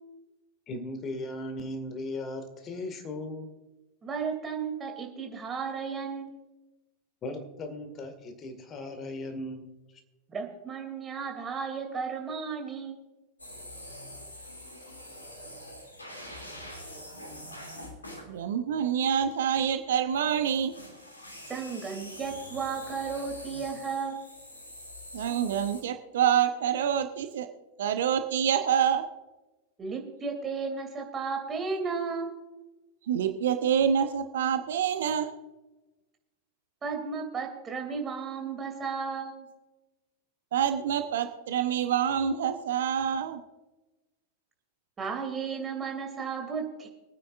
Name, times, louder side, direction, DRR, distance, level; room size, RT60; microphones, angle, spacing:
voice 1, 0.7-3.5 7.2-9.7 9.9-10.0, left 1 dB, 30° left, 7 dB, 2.0 m, -37 dB
voice 2, 4.0-6.4 10.3-13.0 21.5-24.3 29.8-32.3 36.8-39.5 45.0-46.9, right 5 dB, 20° right, 3 dB, 2.8 m, -34 dB
sound 1, 13.4-18.3 20.7-25.8, left 1 dB, 80° left, 2.7 m, -44 dB
voice 3, 18.3-20.7 25.1-27.5 27.8-29.1 33.1-35.3 40.5-43.4, right 8 dB, 60° right, 8 dB, 0.9 m, -26 dB
25.0 x 9.6 x 2.5 m, 1.1 s
figure-of-eight pair, 90°, 0 cm